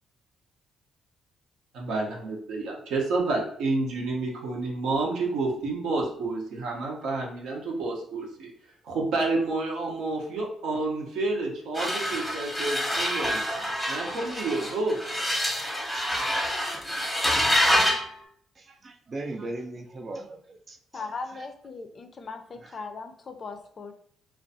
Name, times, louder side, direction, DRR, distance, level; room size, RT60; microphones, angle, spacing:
voice 1, 1.7-8.5 8.8-13.4 13.9-15.0, right 3 dB, 80° right, -1 dB, 0.7 m, -29 dB
sound 1, 11.7-18.1, equal, ahead, 0.7 m, -26 dB
voice 2, 18.6-21.0 21.3-21.4 22.6-22.7, right 2 dB, 40° right, 4 dB, 0.4 m, -38 dB
voice 3, 20.9-23.9, left 4 dB, 45° left, 6 dB, 0.3 m, -38 dB
2.4 x 2.2 x 2.6 m, 0.63 s
cardioid pair, 90°, 0 cm